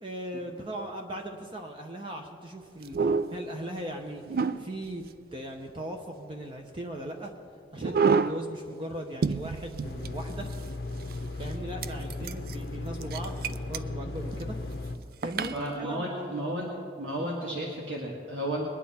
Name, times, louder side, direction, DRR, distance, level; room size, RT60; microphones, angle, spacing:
voice 1, 0.0-7.3 7.7-10.5 11.4-14.6 15.2-16.5 17.2-17.3, right 1 dB, 30° right, 3 dB, 0.8 m, -38 dB
sound 1, 2.8-3.5 4.3-5.1 7.8-8.5 8.9-9.0 9.2-10.7 11.1-11.2 11.8-12.5 13.0-13.8 14.2-14.4 15.2-15.6, right 5 dB, 50° right, 0.4 m, -28 dB
sound 2, 9.8-15.0, left 2 dB, 70° left, 0.7 m, -36 dB
voice 2, 15.5-16.7 17.0-18.6, right 1 dB, 90° right, -3 dB, 1.8 m, -33 dB
21.5 x 10.0 x 4.3 m, 2.2 s
head